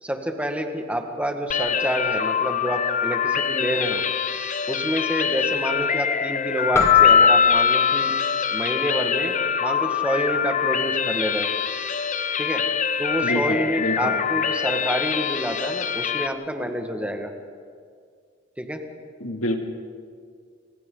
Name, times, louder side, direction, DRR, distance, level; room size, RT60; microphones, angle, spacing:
voice 1, 0.0-4.0 4.7-8.1 8.5-11.5 12.4-12.7 13.0-17.3 18.6-18.8, equal, 5° right, 4 dB, 1.7 m, -28 dB
sound 1, 1.5-16.3, left 7 dB, 40° left, 0.7 m, -25 dB
Keyboard (musical), 6.7-9.1, left 7 dB, 15° left, 1.4 m, -18 dB
voice 2, 13.2-14.2 19.2-19.6, left 1 dB, 85° left, 3 dB, 2.6 m, -27 dB
29.5 x 26.0 x 4.0 m, 2.1 s
head